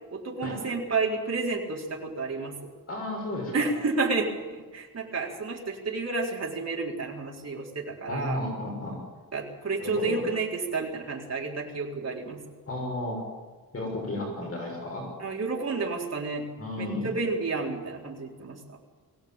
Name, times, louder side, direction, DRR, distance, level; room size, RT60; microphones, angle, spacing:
voice 1, 0.1-2.6 3.5-8.4 9.3-12.4 15.2-16.4 16.8-18.8, right 3 dB, 45° right, -2 dB, 4.3 m, -31 dB
voice 2, 2.9-3.7 8.1-9.0 9.8-10.2 12.7-13.2 13.7-15.1 16.6-17.1, left 1 dB, 40° left, -1 dB, 6.3 m, -33 dB
23.0 x 17.0 x 9.0 m, 1.4 s
wide cardioid pair, 175°, 36 cm